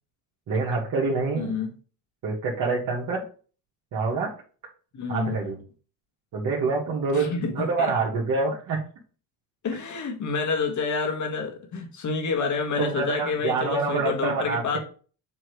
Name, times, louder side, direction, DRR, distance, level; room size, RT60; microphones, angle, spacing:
voice 1, 0.5-1.7 2.2-3.2 3.9-4.3 5.1-5.6 6.3-8.8 12.8-14.8, right 4 dB, 55° right, 1.8 m, -26 dB
voice 2, 1.3-1.8 4.9-5.5 7.1-8.0 9.6-14.8, left 4 dB, 45° left, 1.8 m, -28 dB
7.4 x 3.1 x 4.8 m
supercardioid pair, 85°, 40 cm